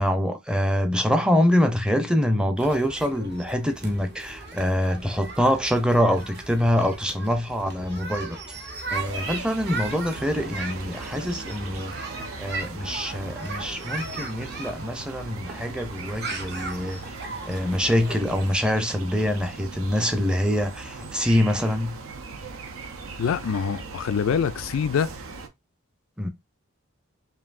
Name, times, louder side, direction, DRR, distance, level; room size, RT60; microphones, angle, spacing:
voice 1, 0.0-8.4 8.9-11.9 12.2-17.0 17.5-22.0 26.2-26.3, equal, 5° right, 0.5 m, -25 dB
sound 1, 2.6-18.6, right 3 dB, 50° right, 0.9 m, -37 dB
sound 2, 8.9-25.5, right 4 dB, 80° right, 0.7 m, -39 dB
voice 2, 23.2-25.1, left 7 dB, 75° left, 0.3 m, -25 dB
5.4 x 2.6 x 2.5 m
head